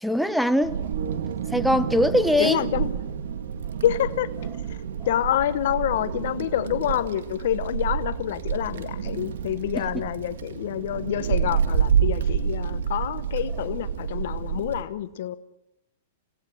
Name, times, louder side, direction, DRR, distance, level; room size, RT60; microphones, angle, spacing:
voice 1, 0.0-0.9 1.5-2.6 9.7-9.9, equal, ahead, 0.9 m, -22 dB
Wind, 0.6-14.8, right 7 dB, 80° right, 1.8 m, -28 dB
voice 2, 2.4-2.9 3.8-4.8 5.1-15.4, left 11 dB, 65° left, 0.9 m, -27 dB
27.0 x 18.0 x 6.4 m
hypercardioid pair, 135°, 0 cm